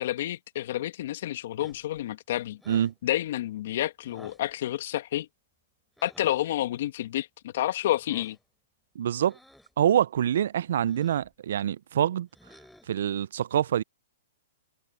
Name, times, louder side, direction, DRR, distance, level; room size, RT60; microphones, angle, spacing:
voice 1, 0.0-2.6 3.0-5.3 6.0-8.4, left 13 dB, 60° left, 2.3 m, -29 dB
sound 1, 1.6-2.0 2.6-3.0 4.0-4.5 6.0-6.4 7.9-8.4 9.2-9.8 10.8-11.3 12.3-13.0, left 1 dB, ahead, 3.8 m, -53 dB
voice 2, 9.0-9.3 9.8-12.3 12.9-13.8, right 10 dB, 70° right, 0.4 m, -25 dB
hypercardioid pair, 140°, 0 cm